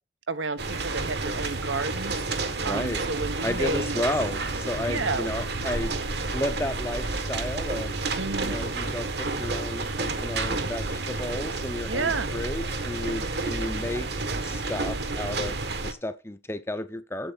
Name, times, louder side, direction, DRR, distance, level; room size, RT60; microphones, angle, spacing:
voice 1, 0.3-2.2 2.6-4.0 4.9-5.3 8.2-8.6 11.8-12.3, right 3 dB, 85° right, 1.0 m, -31 dB
sound 1, 0.6-15.9, right 3 dB, 60° right, 1.2 m, -30 dB
voice 2, 2.6-3.0 3.4-5.9 6.3-7.9 8.4-14.1 14.4-17.3, left 1 dB, 15° left, 0.7 m, -33 dB
8.5 x 7.9 x 4.1 m
head